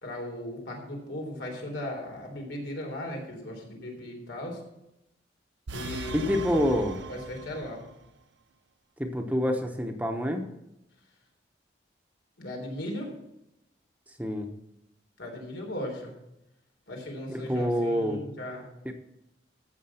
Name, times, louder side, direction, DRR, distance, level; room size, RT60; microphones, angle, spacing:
voice 1, 0.0-4.6 5.7-6.3 7.1-7.8 12.4-13.1 15.2-16.1 16.9-18.7, left 1 dB, 90° left, 1 dB, 3.7 m, -37 dB
sound 1, 5.7-7.9, right 3 dB, 85° right, 0.7 m, -39 dB
voice 2, 6.1-7.0 9.0-10.4 14.2-14.5 17.3-18.2 18.8-18.9, equal, 10° right, 4 dB, 0.9 m, -27 dB
14.5 x 6.6 x 5.7 m, 0.87 s
head